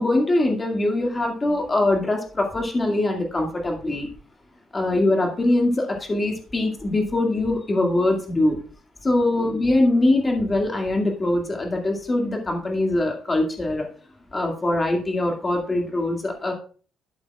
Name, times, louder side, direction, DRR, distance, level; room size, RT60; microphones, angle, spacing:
voice 1, 0.0-4.1 4.7-8.6 9.0-13.9 14.3-16.5, left 2 dB, 20° left, 2 dB, 2.1 m, -22 dB
11.5 x 8.6 x 2.4 m, 0.41 s
cardioid pair, 145°, 0 cm